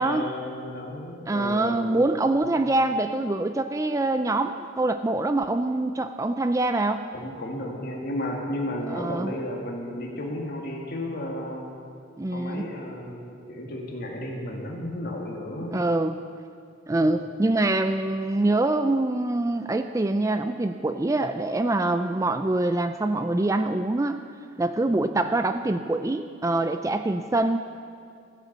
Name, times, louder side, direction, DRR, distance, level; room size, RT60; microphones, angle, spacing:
voice 1, 0.0-2.4 7.1-11.7 12.3-15.9 24.8-25.3, left 1 dB, 50° left, -1 dB, 2.2 m, -33 dB
voice 2, 1.3-7.1 8.9-9.3 12.2-12.7 15.7-16.2 16.9-24.2 24.6-27.6, right 2 dB, 15° right, 8 dB, 0.3 m, -24 dB
14.0 x 8.2 x 7.4 m, 2.2 s
head